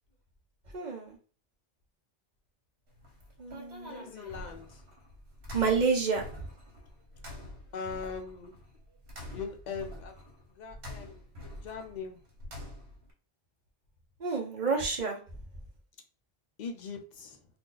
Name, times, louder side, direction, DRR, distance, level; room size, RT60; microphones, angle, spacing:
voice 1, 0.7-1.2 3.4-4.1 5.5-6.2 14.2-15.2, right 5 dB, 45° right, 2 dB, 0.8 m, -29 dB
sound 1, 2.9-13.1, left 1 dB, 75° right, 1.3 m, -46 dB
voice 2, 3.8-4.8 7.7-8.5 9.3-10.2 10.5-11.2 11.6-12.2 16.6-17.5, left 5 dB, 50° left, 4 dB, 0.7 m, -40 dB
2.7 x 2.3 x 3.8 m, 0.37 s
omnidirectional pair, 1.1 m